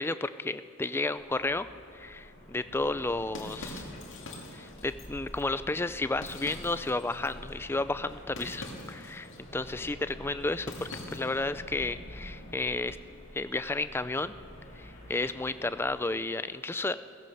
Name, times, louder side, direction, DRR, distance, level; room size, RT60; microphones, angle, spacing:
voice 1, 0.0-1.7 1.9-3.9 4.5-13.0 13.3-14.3 14.8-16.9, left 2 dB, 10° left, 13 dB, 0.3 m, -32 dB
sound 1, 1.1-16.0, equal, 35° left, 3.4 m, -48 dB
sound 2, 2.9-11.5, left 2 dB, 60° left, 2.4 m, -46 dB
16.5 x 15.0 x 5.5 m, 2.6 s
head